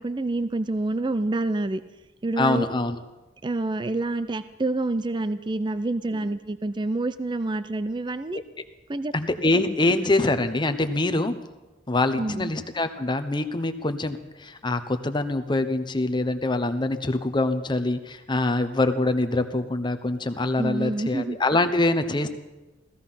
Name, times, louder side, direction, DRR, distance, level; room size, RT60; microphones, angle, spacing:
voice 1, 0.0-1.8 2.2-2.7 3.4-8.4 8.9-9.1 12.2-12.5 20.6-21.4, right 2 dB, 25° right, 12 dB, 0.5 m, -27 dB
voice 2, 2.4-3.0 6.1-6.3 8.3-8.4 9.1-11.3 11.9-22.3, left 2 dB, 25° left, 9 dB, 0.9 m, -24 dB
15.5 x 15.5 x 5.7 m, 1.1 s
head